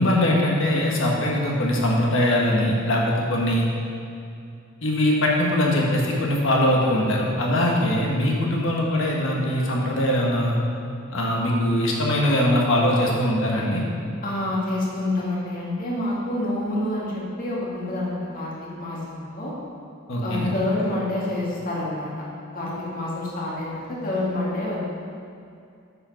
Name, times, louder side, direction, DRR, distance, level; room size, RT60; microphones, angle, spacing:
voice 1, 0.0-3.7 4.8-10.6 11.1-13.8 20.1-20.5, left 1 dB, 65° left, -2 dB, 1.4 m, -21 dB
voice 2, 14.2-18.5 18.8-19.5 20.2-22.2 22.5-24.8, left 1 dB, 45° left, -6 dB, 2.1 m, -27 dB
8.4 x 5.1 x 5.7 m, 2.5 s
head